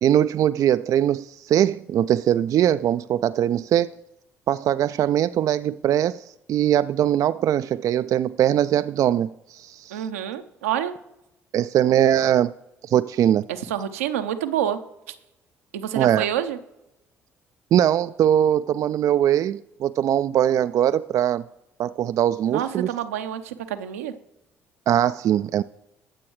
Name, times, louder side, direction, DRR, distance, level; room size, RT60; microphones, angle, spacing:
voice 1, 0.0-4.0 4.5-10.0 11.5-12.5 12.8-13.4 16.0-16.3 17.7-21.4 21.8-22.9 24.9-25.6, right 10 dB, 50° right, 0.3 m, -21 dB
voice 2, 9.9-10.9 13.5-14.8 15.1-15.2 15.7-16.6 22.5-24.1, right 10 dB, 80° right, 0.7 m, -28 dB
21.5 x 7.7 x 3.1 m
hypercardioid pair, 50°, 7 cm